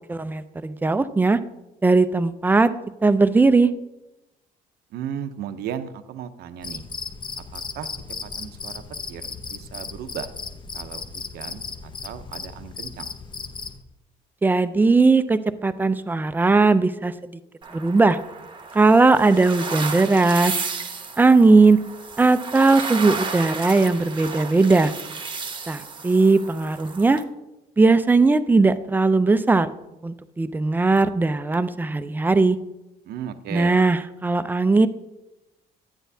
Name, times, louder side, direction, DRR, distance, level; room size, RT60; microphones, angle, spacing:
voice 1, 0.1-1.4 1.8-2.7 3.0-3.7 14.4-17.4 17.7-18.2 18.7-20.5 21.2-21.8 22.2-24.9 25.7-27.2 27.8-29.7 30.0-32.6 33.5-34.9, right 3 dB, 10° right, 12 dB, 0.4 m, -18 dB
voice 2, 4.9-6.9 7.5-7.9 8.2-10.3 10.7-13.2 33.0-33.8, right 9 dB, 70° right, 10 dB, 0.6 m, -36 dB
Cricket, 6.6-13.8, left 5 dB, 30° left, 0.7 m, -36 dB
sound 1, 17.6-27.2, right 4 dB, 30° right, 0.8 m, -33 dB
10.0 x 9.0 x 2.7 m, 0.96 s
cardioid pair, 110°, 17 cm